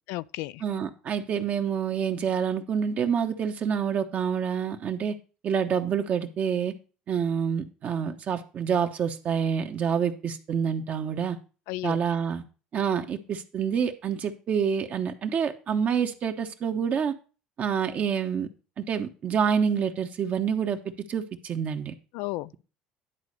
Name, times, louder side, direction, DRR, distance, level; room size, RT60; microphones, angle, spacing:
voice 1, 0.1-0.6 11.7-12.0 22.1-22.6, left 19 dB, 75° left, 0.3 m, -33 dB
voice 2, 0.6-5.2 5.4-6.7 7.1-11.4 11.8-12.4 12.7-17.1 17.6-18.5 18.8-20.8 21.1-21.9, right 7 dB, 50° right, 1.2 m, -27 dB
10.5 x 4.1 x 6.6 m
supercardioid pair, 80°, 3 cm